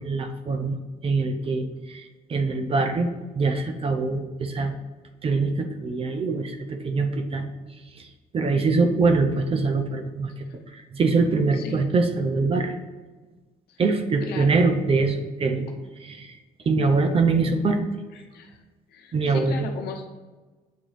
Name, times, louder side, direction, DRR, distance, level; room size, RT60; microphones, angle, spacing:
voice 1, 0.0-4.7 5.2-7.4 8.0-8.1 8.3-10.3 10.7-12.7 13.8-15.7 16.0-16.3 16.7-17.8 19.1-19.7, right 3 dB, 35° right, 6 dB, 0.6 m, -23 dB
voice 2, 14.2-14.5 18.1-18.6 18.9-20.0, left 5 dB, 70° left, 3 dB, 0.9 m, -37 dB
8.3 x 3.7 x 3.3 m, 1.3 s
cardioid pair, 110°, 17 cm